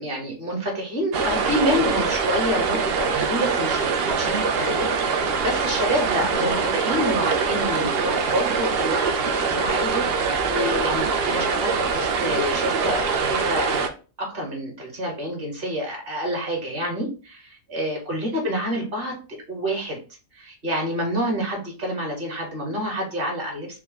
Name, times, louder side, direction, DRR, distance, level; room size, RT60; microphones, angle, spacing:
voice 1, 0.0-3.8 4.1-13.8 14.2-20.0 20.3-23.8, equal, 40° right, 0 dB, 1.5 m, -28 dB
sound 1, 1.1-13.9, right 5 dB, 55° right, 0.7 m, -23 dB
4.2 x 2.3 x 3.9 m, 0.35 s
omnidirectional pair, 1.4 m